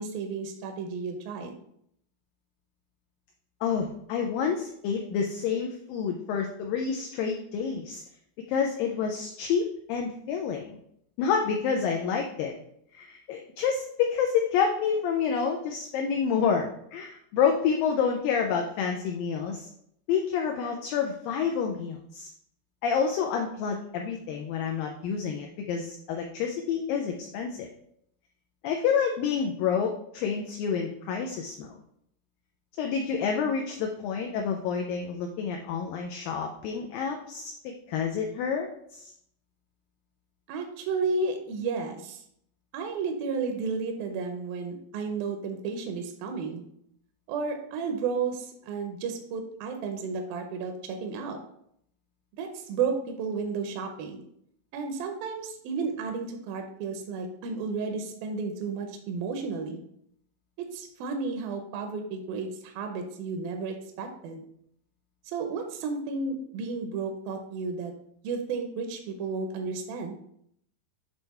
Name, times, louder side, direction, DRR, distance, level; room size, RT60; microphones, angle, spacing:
voice 1, 0.0-1.5 40.5-42.2 42.7-46.6 47.3-51.4 52.4-54.2 54.7-59.8 60.7-64.4 65.3-67.9 68.2-70.2, right 4 dB, 75° right, 4 dB, 2.2 m, -32 dB
voice 2, 3.6-8.0 8.5-10.8 11.2-12.5 12.9-19.7 20.1-22.3 22.8-27.7 28.6-31.8 32.8-39.1, left 6 dB, 85° left, 2 dB, 2.0 m, -28 dB
8.1 x 3.3 x 4.1 m, 0.70 s
omnidirectional pair, 4.7 m